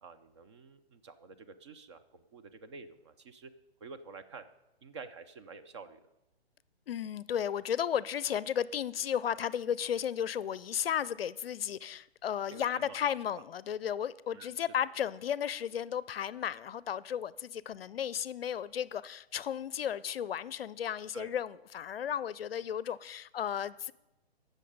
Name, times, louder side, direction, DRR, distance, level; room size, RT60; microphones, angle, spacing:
voice 1, 0.0-3.5 3.8-4.4 4.8-6.1 12.5-13.2 14.3-14.7 21.1-21.3, right 4 dB, 30° right, 0.5 m, -49 dB
voice 2, 6.9-23.9, left 9 dB, 65° left, 0.5 m, -34 dB
16.0 x 6.5 x 5.3 m
hypercardioid pair, 140°, 32 cm